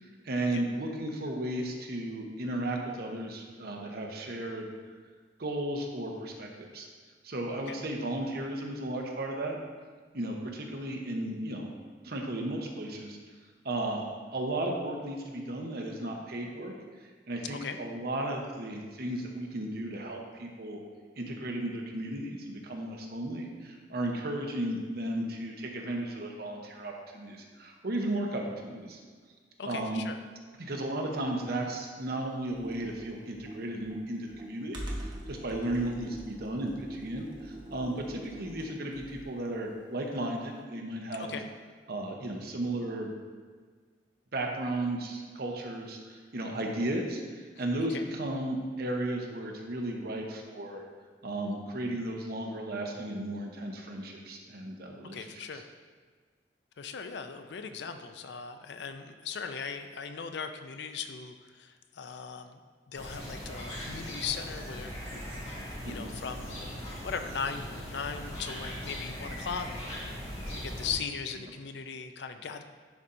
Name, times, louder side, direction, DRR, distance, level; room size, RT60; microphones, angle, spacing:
voice 1, 0.2-4.7 5.4-6.9 7.2-9.6 10.1-11.7 12.0-13.2 13.6-14.0 14.3-16.7 17.3-20.8 21.2-29.0 29.7-30.0 30.6-34.8 35.3-41.3 41.9-43.1 44.3-50.8 51.2-55.3 55.5-55.6 65.8-66.1, right 1 dB, 60° right, 1 dB, 0.8 m, -34 dB
voice 2, 29.6-30.2 41.2-41.5 47.9-48.0 55.0-55.7 56.8-62.6 62.9-65.4 65.8-66.6 67.0-69.7 70.5-72.6, left 6 dB, 70° left, 8 dB, 0.4 m, -38 dB
Computer keyboard, 32.5-39.4, right 1 dB, 25° right, 1.0 m, -43 dB
sound 1, 62.9-70.9, equal, 35° left, 1.8 m, -40 dB
10.5 x 4.2 x 2.6 m, 1.5 s
head